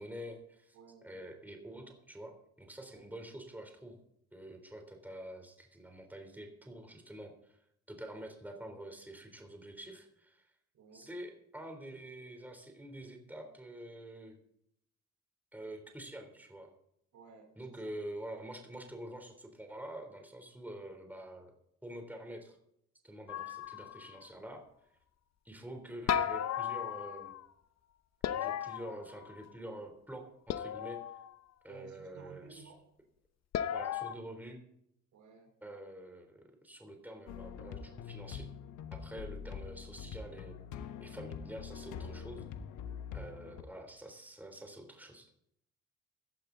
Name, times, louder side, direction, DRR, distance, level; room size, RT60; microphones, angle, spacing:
voice 1, 0.0-0.8 1.0-4.0 4.3-10.5 10.9-14.4 15.5-16.7 17.6-21.5 21.8-22.6 23.0-24.6 25.4-27.3 28.3-31.0 31.6-32.6 33.7-34.6 35.6-38.5 38.9-40.6 41.0-42.5 43.1-45.3, right 1 dB, 5° right, 4 dB, 3.6 m, -47 dB
voice 2, 0.7-1.1 2.9-3.1 10.7-11.1 17.1-17.9 31.7-32.8 35.1-35.6 39.1-39.5 43.1-43.4, right 6 dB, 70° right, 4 dB, 4.1 m, -56 dB
sound 1, 23.3-24.2 26.1-27.5 28.2-29.5 30.5-31.3 33.5-34.1, left 9 dB, 60° left, 0.8 m, -35 dB
sound 2, 37.3-43.6, left 7 dB, 85° left, 1.2 m, -44 dB
17.5 x 11.5 x 4.0 m, 0.72 s
cardioid pair, 90°, 30 cm